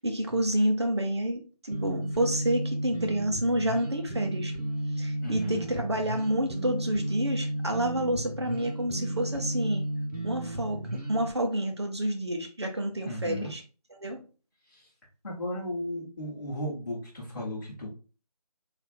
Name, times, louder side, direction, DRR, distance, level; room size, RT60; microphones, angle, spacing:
voice 1, 0.0-4.5 5.0-9.8 10.2-13.6 13.9-14.2, right 1 dB, 45° right, 3 dB, 0.7 m, -29 dB
sound 1, 1.7-11.3, right 1 dB, 90° right, 1.6 m, -33 dB
voice 2, 5.2-5.7 13.0-13.5 14.7-14.8 15.2-17.9, equal, 30° left, -7 dB, 1.2 m, -35 dB
3.3 x 2.5 x 4.2 m, 0.35 s
figure-of-eight pair, 175°, 20 cm